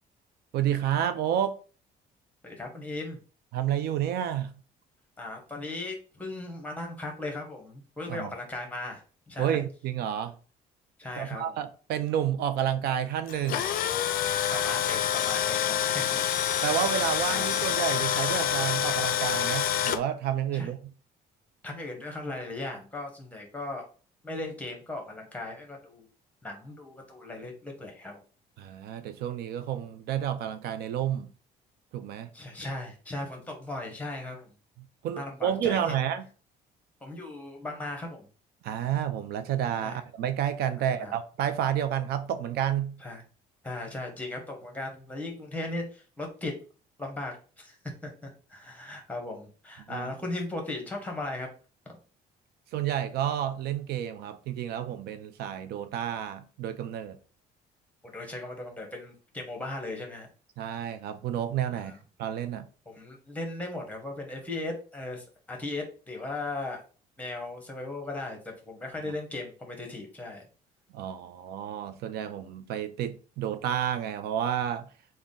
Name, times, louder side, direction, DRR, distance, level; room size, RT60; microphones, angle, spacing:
voice 1, 0.5-1.6 3.5-4.5 8.1-8.3 9.4-10.3 11.2-13.7 16.6-20.8 28.6-31.3 31.9-32.3 35.0-36.3 38.6-43.0 49.9-50.1 52.7-57.2 60.6-61.9 62.2-62.7 70.9-74.9, right 10 dB, 70° right, 0.4 m, -30 dB
voice 2, 2.4-3.2 5.2-9.6 11.0-11.6 14.5-16.2 17.3-17.5 20.5-20.7 21.6-23.9 24.2-26.1 26.4-28.2 32.3-34.5 35.2-35.9 37.0-38.3 39.8-40.0 41.0-41.2 43.0-43.2 43.6-46.5 47.0-47.8 48.0-51.5 58.0-60.3 61.7-61.9 62.9-66.8 67.2-70.4, left 2 dB, 10° left, 1.0 m, -37 dB
Tools, 13.3-20.0, left 10 dB, 60° left, 0.4 m, -27 dB
3.4 x 2.1 x 3.8 m
cardioid pair, 110°, 17 cm